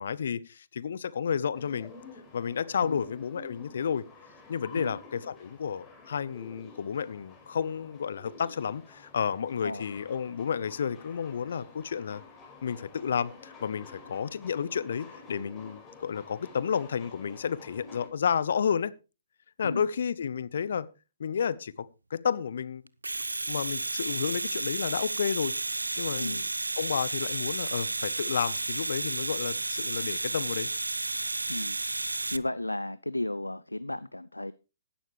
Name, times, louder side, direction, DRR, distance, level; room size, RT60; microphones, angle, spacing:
voice 1, 0.0-1.9 2.3-4.0 4.5-12.2 12.6-18.9 19.6-20.9 21.2-21.9 22.1-22.8 23.5-25.5 26.0-26.4 26.8-30.7, left 7 dB, 60° left, 0.8 m, -31 dB
sound 1, 1.5-18.1, left 3 dB, 15° left, 5.2 m, -50 dB
Domestic sounds home sounds, 22.9-32.4, right 2 dB, 80° right, 0.6 m, -32 dB
voice 2, 32.3-34.5, left 1 dB, 85° left, 0.5 m, -34 dB
15.5 x 11.5 x 3.2 m
figure-of-eight pair, 120°, 0 cm